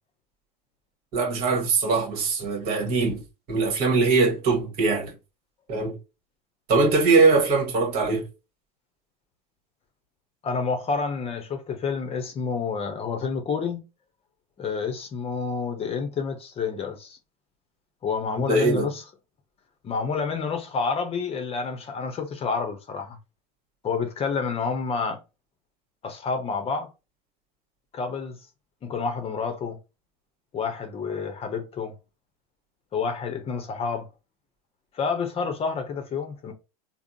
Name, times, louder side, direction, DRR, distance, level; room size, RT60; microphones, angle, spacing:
voice 1, 1.1-3.2 3.5-5.1 5.7-6.0 6.7-8.2 18.5-18.9, right 3 dB, 50° right, 1.3 m, -21 dB
voice 2, 10.4-13.8 14.6-17.2 18.0-19.0 19.8-23.2 23.8-25.2 26.0-26.9 27.9-28.4 28.8-29.8 30.5-31.9 32.9-34.1 34.9-36.5, left 5 dB, 30° left, 0.7 m, -29 dB
3.5 x 2.1 x 2.6 m
hypercardioid pair, 95°, 20 cm